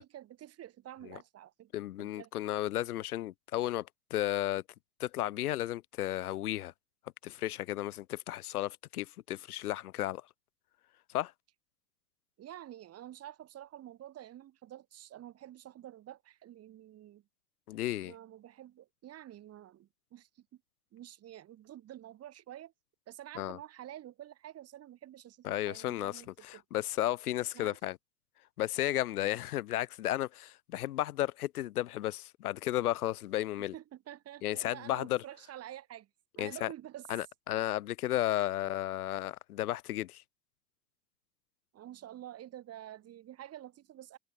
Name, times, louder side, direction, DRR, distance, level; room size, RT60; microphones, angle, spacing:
voice 1, 0.0-1.7 2.0-2.3 12.4-17.2 18.0-20.6 20.9-22.7 23.1-26.6 27.5-27.8 33.6-36.1 36.4-37.0 38.3-38.4 41.7-44.2, right 12 dB, 35° right, 1.8 m, -49 dB
voice 2, 1.7-4.6 5.0-6.7 7.2-10.2 11.1-11.3 17.7-18.1 23.4-23.6 25.4-28.0 28.6-33.7 34.4-35.2 36.4-36.7 37.1-40.2, left 14 dB, 90° left, 0.6 m, -33 dB
hypercardioid pair, 95°, 44 cm